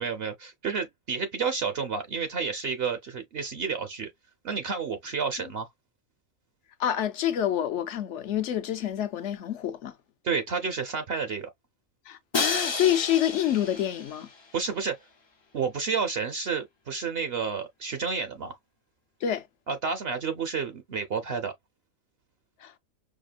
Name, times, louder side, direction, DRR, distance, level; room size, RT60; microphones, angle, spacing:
voice 1, 0.0-4.1 4.4-5.7 10.2-11.5 14.5-15.0 15.5-18.6 19.7-21.5, right 5 dB, 55° right, 0.8 m, -30 dB
voice 2, 6.8-9.9 12.1-14.3 19.2-19.5 22.6-22.7, left 11 dB, 65° left, 0.9 m, -27 dB
Crash cymbal, 12.3-14.3, left 4 dB, 35° left, 0.4 m, -31 dB
5.0 x 2.1 x 2.5 m
omnidirectional pair, 1.4 m